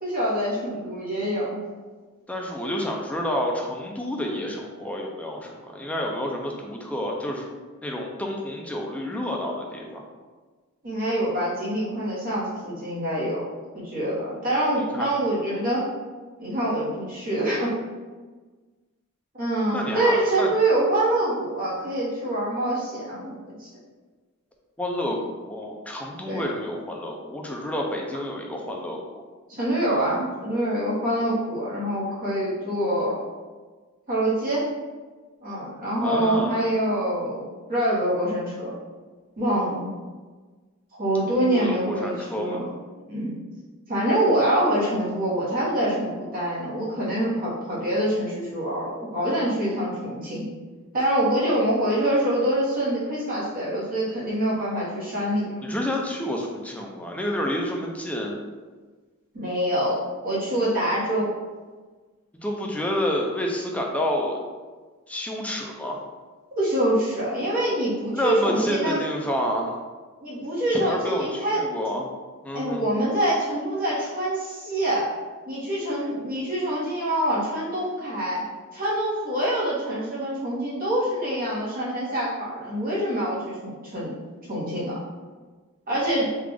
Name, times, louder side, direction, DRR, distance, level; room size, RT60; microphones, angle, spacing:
voice 1, 0.0-1.6 10.8-13.4 13.7-15.8 16.4-17.7 19.3-23.7 26.3-26.4 29.5-33.2 34.1-34.7 35.4-38.7 39.4-39.9 40.9-42.7 43.1-43.3 43.9-50.4 50.9-55.7 59.3-61.3 66.6-69.0 70.2-71.6 72.5-75.1 75.5-78.4 78.7-84.1 84.5-85.0 85.9-86.3, right 1 dB, 40° right, -7 dB, 1.2 m, -25 dB
voice 2, 2.3-7.4 7.8-10.0 14.9-15.1 19.7-20.5 24.8-29.2 36.0-36.7 41.3-42.6 55.6-58.4 62.4-64.4 65.1-66.0 68.1-69.8 70.7-72.1 72.4-72.8, left 1 dB, 5° left, 0 dB, 0.4 m, -29 dB
3.4 x 2.4 x 3.5 m, 1.4 s
head